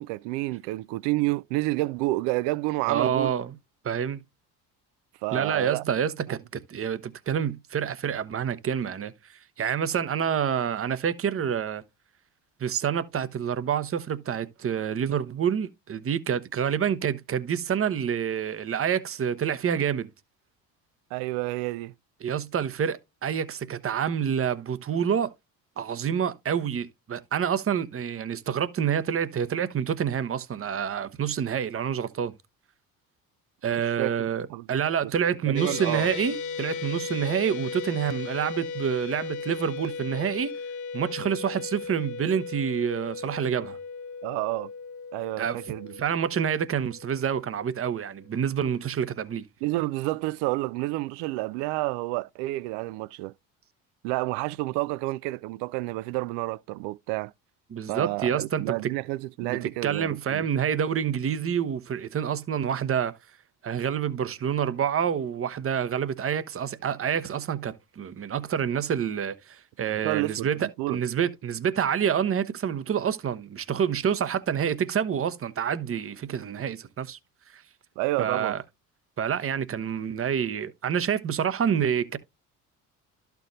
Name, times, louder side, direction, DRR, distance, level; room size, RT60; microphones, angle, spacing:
voice 1, 0.0-3.4 5.2-5.8 6.3-6.4 21.1-21.9 33.7-34.7 35.0-35.1 35.4-36.1 44.2-44.7 45.1-46.0 49.6-53.3 54.0-57.3 57.9-60.5 70.0-71.0 78.0-78.6, right 20 dB, 60° right, 0.5 m, -30 dB
voice 2, 2.9-3.5 3.8-4.2 5.3-11.8 12.6-20.1 22.2-25.3 25.8-32.3 33.6-40.5 40.9-43.8 45.4-45.6 46.0-49.4 57.7-58.9 59.4-63.1 63.6-77.2 77.5-77.6 78.2-78.6 79.2-82.2, right 8 dB, 30° right, 0.9 m, -28 dB
sound 1, 35.6-47.9, left 5 dB, 40° left, 1.4 m, -37 dB
13.0 x 4.6 x 2.5 m
hypercardioid pair, 55°, 46 cm